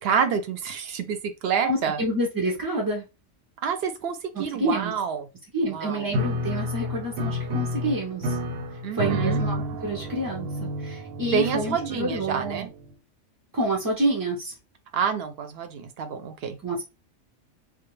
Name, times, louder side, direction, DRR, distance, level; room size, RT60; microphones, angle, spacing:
voice 1, 0.0-2.0 3.6-5.2 5.7-6.0 8.8-9.4 11.3-12.7 14.9-16.6, right 7 dB, 65° right, 0.7 m, -28 dB
voice 2, 1.6-3.0 4.3-4.9 5.5-8.4 8.9-12.7 13.5-14.5 16.6-16.8, right 1 dB, 35° right, 0.3 m, -28 dB
Piano, 6.1-12.9, left 1 dB, 85° right, 1.0 m, -30 dB
2.4 x 2.1 x 3.0 m
omnidirectional pair, 1.3 m